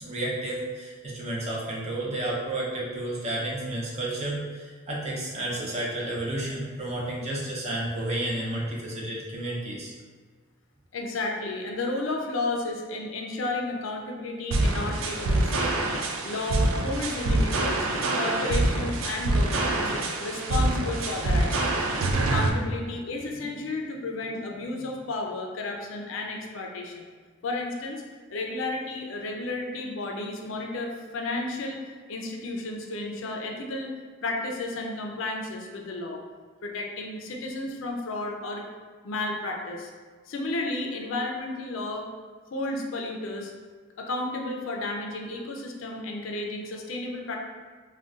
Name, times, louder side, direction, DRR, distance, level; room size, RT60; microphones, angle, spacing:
voice 1, 0.0-9.9, right 1 dB, 35° right, -4 dB, 0.6 m, -31 dB
voice 2, 10.9-15.9 16.2-17.9 18.1-19.9 20.2-21.8 22.2-27.1 27.4-28.0 28.3-31.8 32.1-33.9 34.2-36.2 36.6-38.6 39.0-39.9 40.3-42.1 42.5-43.5 44.0-47.4, left 2 dB, 70° left, 1 dB, 0.4 m, -32 dB
sound 1, 14.5-22.5, right 2 dB, 85° right, 0.4 m, -25 dB
sound 2, 17.4-18.4 19.4-20.1 20.4-20.7 21.0-25.0, left 1 dB, 5° right, 1.4 m, -45 dB
3.7 x 2.2 x 2.3 m, 1.5 s
head